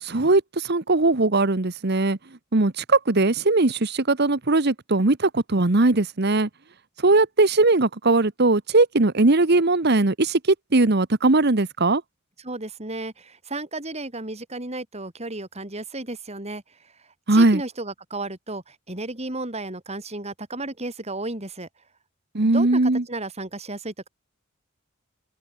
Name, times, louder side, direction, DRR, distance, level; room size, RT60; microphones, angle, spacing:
voice 1, 0.0-2.2 2.5-6.5 7.0-12.0 17.3-17.6 22.3-23.0, right 2 dB, 55° right, 1.2 m, -20 dB
voice 2, 12.4-16.6 17.3-21.7 22.4-24.1, right 2 dB, 30° right, 4.3 m, -33 dB
open air
head